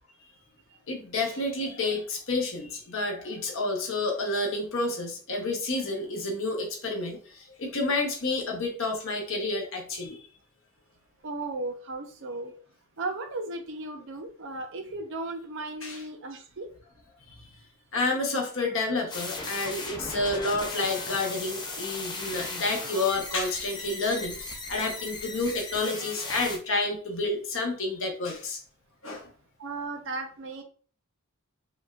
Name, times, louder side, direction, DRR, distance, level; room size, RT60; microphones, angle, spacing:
voice 1, 0.9-10.2 15.8-16.0 17.3-17.4 17.9-28.6 29.0-29.3, left 2 dB, 60° left, 1.0 m, -30 dB
voice 2, 11.2-12.5 13.0-16.7 29.6-30.6, right 2 dB, 55° right, 0.6 m, -35 dB
sound 1, 19.1-26.6, left 3 dB, 20° left, 0.5 m, -37 dB
5.0 x 2.3 x 2.4 m
head